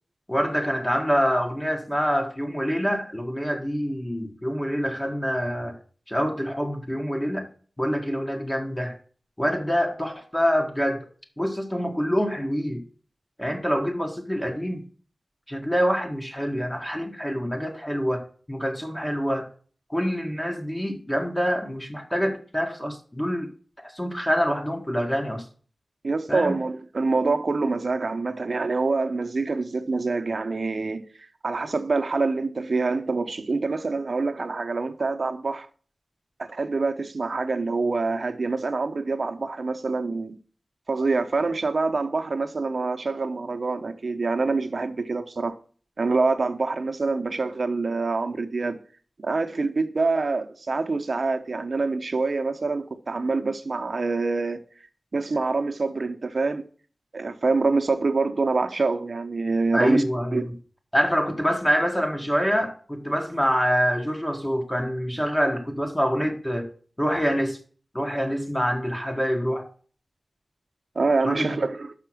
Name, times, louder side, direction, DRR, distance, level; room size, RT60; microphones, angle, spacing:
voice 1, 0.3-5.8 6.1-7.5 7.8-9.0 9.4-11.1 11.4-12.8 13.4-14.8 15.5-19.5 19.9-23.5 23.8-25.4 26.3-26.5 59.7-60.5 60.9-66.7 67.0-67.6 67.9-69.6 71.2-71.6, equal, 15° left, 1.4 m, -26 dB
voice 2, 26.0-31.0 31.4-35.7 36.4-40.4 40.9-45.5 46.0-48.8 49.2-54.6 55.1-56.6 57.1-60.0 60.3-60.5 70.9-71.9, right 3 dB, 65° right, 0.7 m, -25 dB
5.9 x 5.7 x 6.0 m
wide cardioid pair, 80°, 0 cm